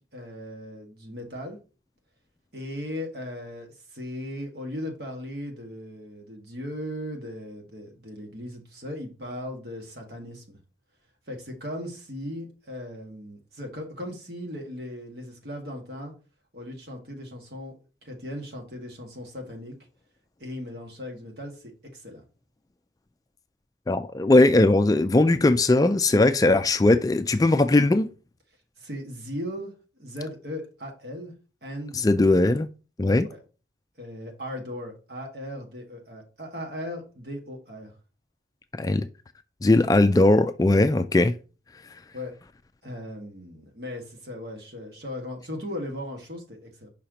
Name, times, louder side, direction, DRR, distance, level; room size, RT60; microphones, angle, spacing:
voice 1, 0.1-1.6 2.5-10.6 11.3-16.1 16.5-17.7 18.0-19.8 20.4-22.2 28.8-29.7 30.0-31.3 31.6-32.0 33.3-33.4 34.0-37.9 42.1-42.3 42.8-46.9, left 1 dB, 55° right, 1.8 m, -37 dB
voice 2, 23.9-28.1 31.9-32.7 33.0-33.3 38.7-39.1 39.6-41.3, left 2 dB, 20° left, 0.3 m, -19 dB
5.7 x 4.3 x 5.1 m
head